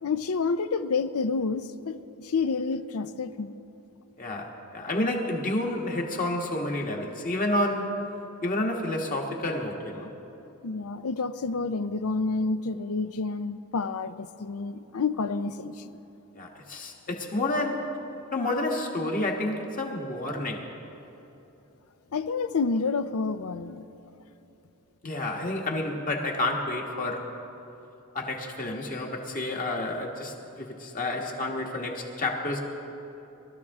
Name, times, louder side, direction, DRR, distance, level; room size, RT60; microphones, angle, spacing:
voice 1, 0.0-3.5 10.6-16.0 22.1-23.9, left 4 dB, 70° left, 12 dB, 0.5 m, -29 dB
voice 2, 4.2-8.0 8.4-10.1 16.3-17.9 18.3-20.7 25.0-27.4 28.1-32.6, left 1 dB, 40° left, 1 dB, 1.5 m, -30 dB
22.5 x 13.0 x 3.6 m, 2.9 s
head